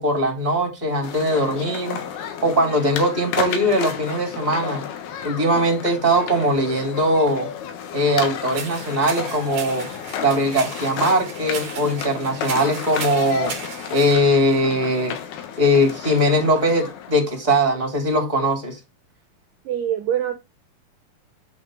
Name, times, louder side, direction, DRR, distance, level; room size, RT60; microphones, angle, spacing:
voice 1, 0.0-2.0 2.4-4.8 5.2-7.5 7.9-9.9 10.2-13.5 13.9-15.1 15.6-18.8, equal, 10° right, 3.0 m, -20 dB
sound 1, 1.0-17.5, left 8 dB, 75° left, 3.1 m, -32 dB
sound 2, 8.5-14.2, right 5 dB, 50° right, 1.7 m, -36 dB
voice 2, 19.7-20.3, right 10 dB, 75° right, 2.1 m, -23 dB
8.7 x 5.3 x 3.8 m
omnidirectional pair, 4.8 m